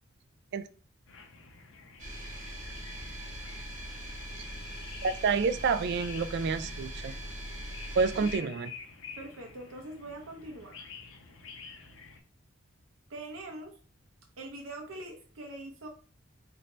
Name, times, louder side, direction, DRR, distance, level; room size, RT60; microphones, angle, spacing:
sound 1, 1.1-12.2, left 5 dB, 65° left, 0.7 m, -49 dB
sound 2, 2.0-8.4, equal, 35° right, 1.1 m, -41 dB
voice 1, 5.0-7.1 7.9-8.7, right 5 dB, 55° right, 11 dB, 0.3 m, -28 dB
voice 2, 8.2-8.5 9.2-10.8 13.1-13.8 14.4-15.9, right 2 dB, 85° right, 1 dB, 0.7 m, -43 dB
4.2 x 2.6 x 3.2 m, 0.37 s
head